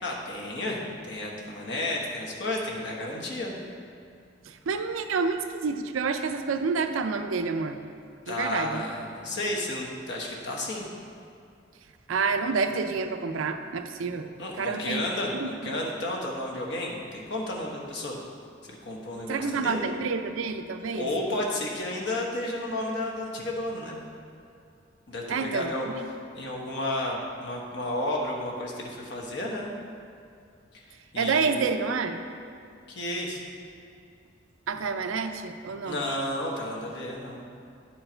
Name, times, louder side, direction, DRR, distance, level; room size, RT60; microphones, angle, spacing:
voice 1, 0.0-3.6 8.3-10.9 14.4-18.2 18.7-20.1 20.9-24.0 25.1-25.9 26.3-29.7 30.7-30.8 31.1-31.6 32.9-33.4 35.8-37.6, left 1 dB, 55° left, -2 dB, 1.2 m, -32 dB
voice 2, 4.7-7.8 8.3-8.8 12.1-14.3 14.6-15.0 15.4-15.5 19.3-21.1 25.3-25.7 31.2-32.2 34.7-36.0, right 4 dB, 85° right, 8 dB, 0.5 m, -28 dB
10.5 x 4.5 x 4.4 m, 2.4 s
head